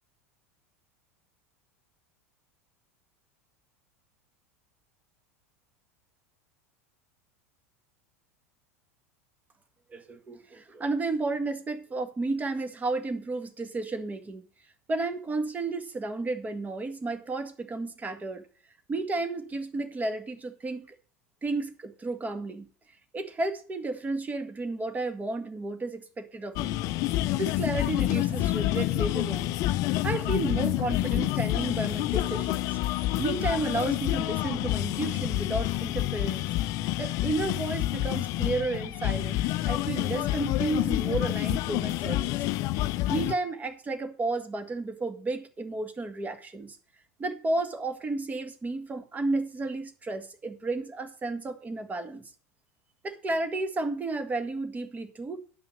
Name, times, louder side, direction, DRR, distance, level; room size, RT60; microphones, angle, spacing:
voice 1, 9.9-14.4 14.9-18.4 18.9-20.9 21.4-22.7 23.1-26.8 27.4-29.6 30.0-32.8 33.2-36.5 37.0-42.4 43.1-46.8 47.2-52.3 53.0-55.4, right 2 dB, 20° right, 1.7 m, -32 dB
sound 1, 26.6-43.3, left 15 dB, 50° left, 0.5 m, -28 dB
10.5 x 5.7 x 6.7 m
figure-of-eight pair, 85°, 8 cm